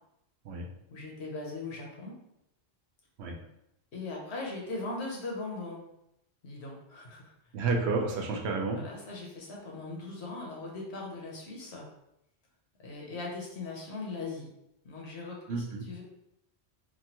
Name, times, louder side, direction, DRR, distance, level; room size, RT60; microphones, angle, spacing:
voice 1, 0.9-2.1 3.9-5.8 6.4-7.3 8.7-11.9 12.8-14.5 14.8-16.0, left 3 dB, 75° left, -2 dB, 1.1 m, -39 dB
voice 2, 7.5-8.8 15.5-15.9, right 3 dB, 80° right, 2 dB, 0.8 m, -30 dB
3.0 x 2.3 x 2.9 m, 0.82 s
omnidirectional pair, 1.1 m